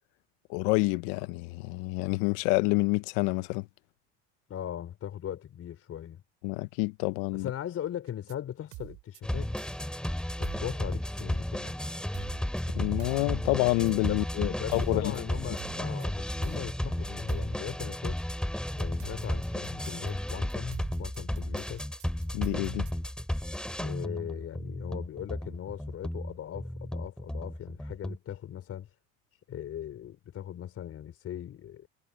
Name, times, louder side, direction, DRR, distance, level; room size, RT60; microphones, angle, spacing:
voice 1, 0.5-3.7 6.4-7.5 12.7-15.1 22.3-22.9, left 24 dB, 75° left, 1.1 m, -28 dB
voice 2, 4.5-6.2 7.3-9.5 10.4-11.8 14.1-18.2 18.8-21.9 23.8-28.9 29.5-31.9, left 10 dB, 40° left, 4.8 m, -39 dB
sound 1, 8.1-8.3 8.7-9.2 9.6-9.8 10.4-10.7 12.1-12.6 13.0-13.2 13.9-14.2 14.7-15.2 15.6-16.1 16.4-16.7 17.3-17.6 18.8-22.9, right 22 dB, 65° right, 7.8 m, -47 dB
sound 2, 9.2-28.2, left 1 dB, ahead, 2.9 m, -33 dB
supercardioid pair, 110°, 34 cm